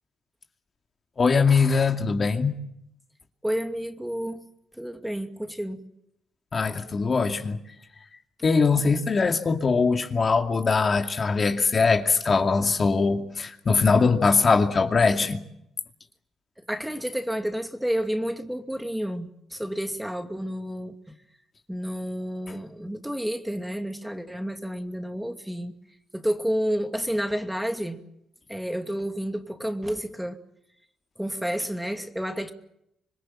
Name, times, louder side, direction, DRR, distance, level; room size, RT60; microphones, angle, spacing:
voice 1, 1.2-2.6 6.5-7.6 8.4-15.4, left 4 dB, 40° left, 2.4 m, -22 dB
voice 2, 3.4-4.4 4.8-5.8 16.7-21.0 21.7-25.7 26.1-28.0 28.5-30.4 31.2-32.5, equal, 5° right, 2.5 m, -30 dB
26.5 x 21.5 x 7.5 m
cardioid pair, 90°, 0 cm